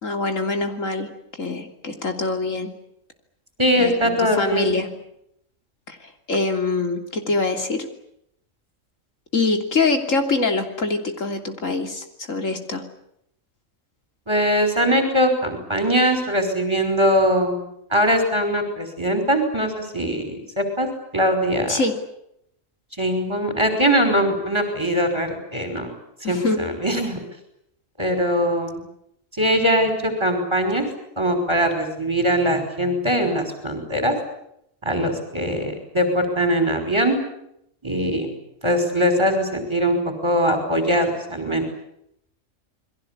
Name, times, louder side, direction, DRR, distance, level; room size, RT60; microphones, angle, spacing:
voice 1, 0.0-1.1 1.4-2.7 3.8-4.9 5.9-7.9 9.3-12.8 21.7-22.0 26.2-26.6, left 3 dB, 70° left, 5 dB, 3.5 m, -24 dB
voice 2, 3.6-4.8 14.3-17.6 17.9-20.9 21.1-21.8 23.0-25.9 26.2-27.2 28.0-28.8 29.3-30.9 31.2-34.1 34.8-37.2 37.8-38.3 38.6-41.7, equal, 20° right, 7 dB, 5.5 m, -21 dB
28.5 x 22.0 x 8.5 m, 0.76 s
omnidirectional pair, 1.4 m